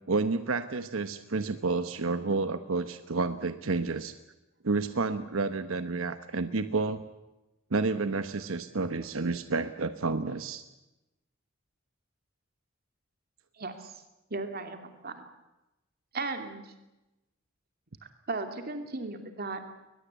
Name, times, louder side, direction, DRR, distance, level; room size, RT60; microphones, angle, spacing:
voice 1, 0.1-4.1 4.6-7.0 7.7-10.6, right 3 dB, 90° right, 10 dB, 1.0 m, -30 dB
voice 2, 13.6-14.0 14.3-15.2 16.1-16.7 18.3-19.7, right 3 dB, 50° right, 6 dB, 2.6 m, -36 dB
22.0 x 20.5 x 8.2 m, 0.99 s
head